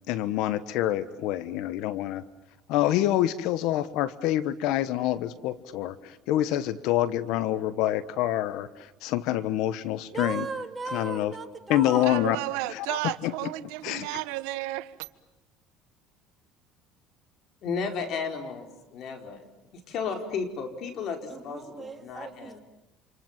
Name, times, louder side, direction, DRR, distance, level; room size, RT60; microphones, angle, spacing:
voice 1, 0.1-2.2 2.7-10.5 10.9-11.3 11.7-12.4 12.8-13.0 13.2-13.3 13.8-14.1, left 13 dB, 75° left, 15 dB, 1.2 m, -26 dB
voice 2, 10.1-12.1 21.3-22.6, right 4 dB, 20° right, 6 dB, 2.8 m, -37 dB
voice 3, 12.0-15.1, right 18 dB, 85° right, 14 dB, 1.2 m, -33 dB
voice 4, 17.6-19.5 19.7-22.6, left 5 dB, 55° left, 5 dB, 4.7 m, -34 dB
28.5 x 28.0 x 7.5 m, 0.96 s
supercardioid pair, 105°, 0 cm